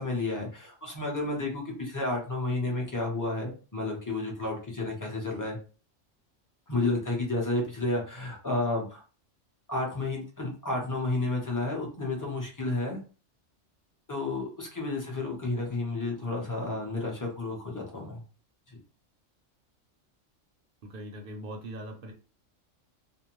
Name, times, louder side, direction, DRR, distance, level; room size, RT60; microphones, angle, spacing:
voice 1, 0.0-5.6 6.7-9.0 9.7-13.0 14.1-18.2 18.7-18.8, left 2 dB, 20° left, -1 dB, 0.6 m, -31 dB
voice 2, 20.8-22.1, right 1 dB, 55° right, 2 dB, 0.7 m, -40 dB
2.5 x 2.1 x 3.0 m, 0.37 s
omnidirectional pair, 1.3 m